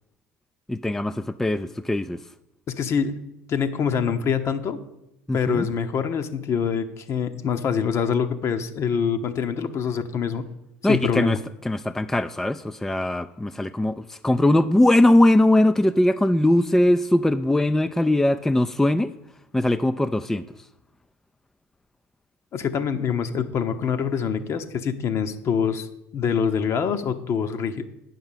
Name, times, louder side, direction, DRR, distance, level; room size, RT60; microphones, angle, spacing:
voice 1, 0.7-2.3 5.3-5.7 10.8-19.1 19.5-20.7, left 1 dB, 5° left, 11 dB, 0.4 m, -21 dB
voice 2, 2.7-3.1 3.5-4.8 5.3-10.5 10.9-11.4 22.5-27.8, left 7 dB, 45° left, 10 dB, 1.0 m, -25 dB
9.4 x 5.7 x 7.4 m, 0.88 s
hypercardioid pair, 80°, 6 cm